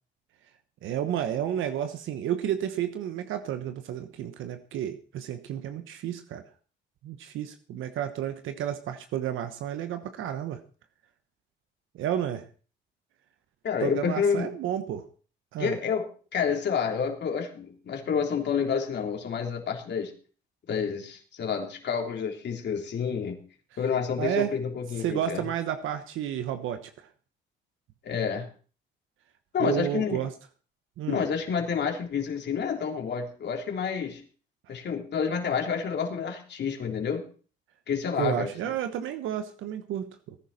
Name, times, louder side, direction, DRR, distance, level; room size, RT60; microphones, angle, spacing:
voice 1, 0.8-6.4 7.0-10.6 11.9-12.4 13.8-15.0 15.5-15.8 24.2-24.5 25.0-27.1 29.6-30.3 31.0-31.2 38.2-40.4, right 10 dB, 85° right, 8 dB, 1.1 m, -31 dB
voice 2, 13.6-14.5 15.6-20.1 20.7-23.4 23.8-25.4 28.0-28.5 29.5-30.2 31.1-34.2 34.7-37.2 37.9-38.5, left 6 dB, 60° left, 2 dB, 3.4 m, -29 dB
18.5 x 10.5 x 4.3 m, 0.39 s
cardioid pair, 90°, 20 cm